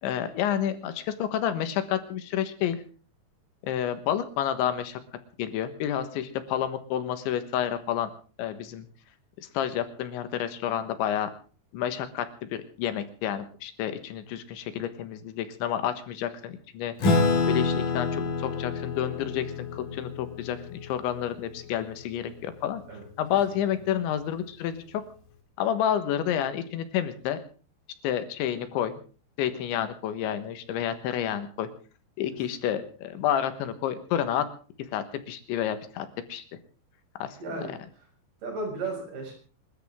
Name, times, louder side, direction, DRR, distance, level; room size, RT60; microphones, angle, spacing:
voice 1, 0.0-2.8 3.6-5.0 5.4-8.1 8.4-8.9 9.5-11.3 11.7-17.0 17.5-22.8 23.2-25.0 25.6-27.4 28.0-29.0 29.4-31.7 32.2-34.5 34.9-36.4 37.2-37.4, left 10 dB, 85° left, 10 dB, 3.8 m, -29 dB
Acoustic guitar / Strum, 17.0-21.9, left 3 dB, 50° left, 3.9 m, -28 dB
voice 2, 37.4-37.8 38.4-39.3, right 3 dB, 60° right, 0 dB, 8.2 m, -34 dB
27.5 x 13.0 x 3.7 m, 0.39 s
omnidirectional pair, 5.1 m